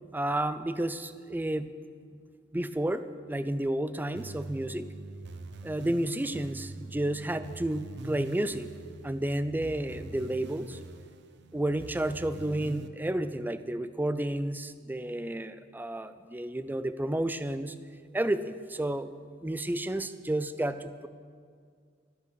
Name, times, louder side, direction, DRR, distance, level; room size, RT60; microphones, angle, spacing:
voice 1, 0.1-1.7 2.5-4.9 5.6-8.7 9.0-10.8 11.5-17.8 18.1-19.1 19.4-21.1, right 1 dB, 10° right, 12 dB, 0.4 m, -31 dB
sound 1, 4.1-12.9, right 2 dB, 65° right, 0.7 m, -44 dB
12.5 x 10.0 x 6.3 m, 2.1 s
head